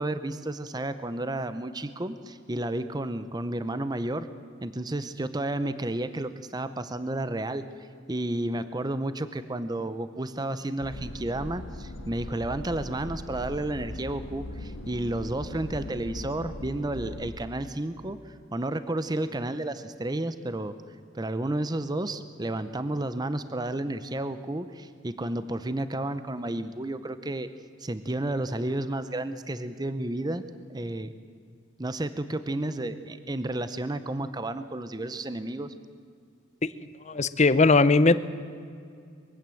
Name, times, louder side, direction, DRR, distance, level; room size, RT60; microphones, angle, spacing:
voice 1, 0.0-4.3 4.6-20.7 21.1-27.5 27.8-30.4 30.7-31.1 31.8-35.7, right 1 dB, 20° right, 12 dB, 0.7 m, -32 dB
sound 1, 10.8-17.3, left 1 dB, 80° left, 1.1 m, -40 dB
voice 2, 37.1-38.2, left 3 dB, 35° left, 15 dB, 0.7 m, -19 dB
22.0 x 16.0 x 7.7 m, 2.3 s
head